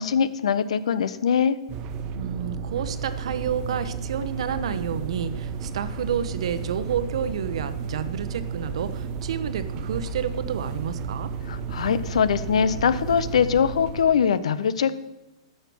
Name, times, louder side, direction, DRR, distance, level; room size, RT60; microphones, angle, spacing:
voice 1, 0.0-1.6 11.5-14.9, left 7 dB, 85° left, 15 dB, 0.5 m, -22 dB
sound 1, 1.7-14.1, right 5 dB, 25° right, 0.6 m, -32 dB
voice 2, 2.1-11.3, right 8 dB, 70° right, 12 dB, 0.7 m, -30 dB
6.9 x 6.3 x 6.1 m, 0.98 s
hypercardioid pair, 160°, 3 cm